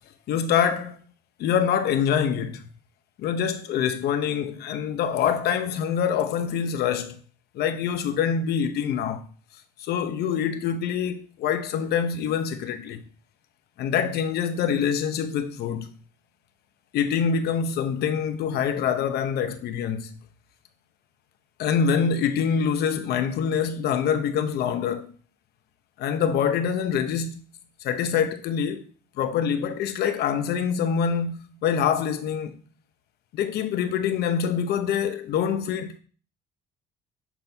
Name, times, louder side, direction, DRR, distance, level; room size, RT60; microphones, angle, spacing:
voice 1, 0.3-1.0 1.4-2.6 3.2-7.2 7.5-9.3 9.8-13.0 13.8-15.9 16.9-20.2 21.6-25.1 26.0-27.4 27.8-28.9 29.2-32.6 33.3-36.0, left 7 dB, 70° left, 0.8 m, -25 dB
7.2 x 4.2 x 3.4 m
cardioid pair, 110°, 17 cm